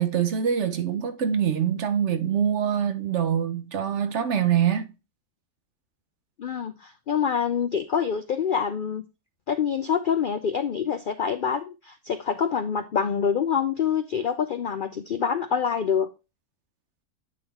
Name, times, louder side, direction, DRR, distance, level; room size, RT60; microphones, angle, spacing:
voice 1, 0.0-4.9, right 8 dB, 55° right, 1.0 m, -24 dB
voice 2, 6.4-9.0 9.5-16.1, left 7 dB, 90° left, 0.4 m, -26 dB
9.3 x 3.9 x 4.1 m
omnidirectional pair, 1.5 m